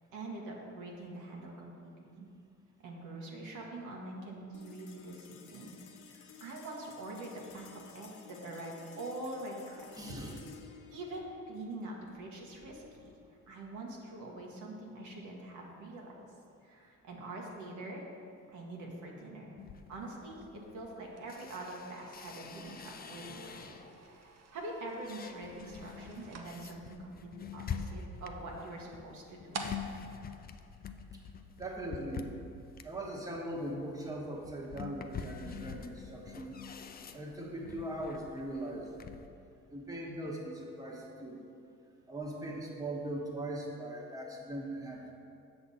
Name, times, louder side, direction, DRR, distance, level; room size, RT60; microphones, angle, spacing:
voice 1, 0.1-2.3 2.8-5.8 6.1-10.1 10.9-13.1 13.5-16.1 16.6-18.0 18.5-19.5 19.9-29.6, right 2 dB, 75° right, -2 dB, 1.4 m, -44 dB
sound 1, 4.5-15.1, left 7 dB, 85° left, 0.7 m, -55 dB
voice 2, 9.9-10.3 31.6-32.3 32.8-36.6 37.1-38.9 39.7-41.4 42.1-45.1, right 1 dB, 10° right, -2 dB, 1.2 m, -40 dB
sound 2, 19.6-24.1 24.5-39.3, left 6 dB, 30° left, 0.4 m, -46 dB
sound 3, 21.1-31.4, right 4 dB, 55° right, 0.8 m, -51 dB
7.7 x 6.0 x 4.1 m, 2.5 s
cardioid pair, 90°, 30 cm